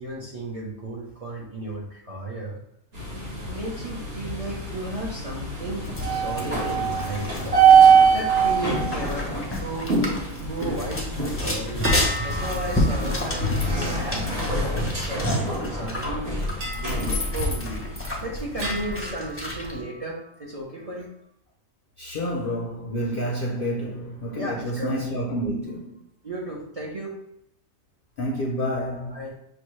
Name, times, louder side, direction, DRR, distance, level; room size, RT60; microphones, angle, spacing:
voice 1, 0.0-2.6 3.5-7.6 8.1-9.9 10.4-11.9 12.2-13.6 13.9-16.4 16.8-17.9 18.2-21.1 24.3-25.0 26.2-27.2 29.1-29.3, right 1 dB, 35° right, 0.7 m, -34 dB
sound 1, 2.9-19.1, right 5 dB, 50° right, 1.6 m, -24 dB
sound 2, 5.8-19.8, left 1 dB, 15° left, 0.5 m, -31 dB
sound 3, 11.8-15.5 16.6-18.2 18.6-20.3, equal, 65° right, 1.4 m, -37 dB
voice 2, 22.0-26.0 28.2-29.2, equal, 55° left, 0.6 m, -29 dB
6.1 x 2.3 x 3.1 m
omnidirectional pair, 1.4 m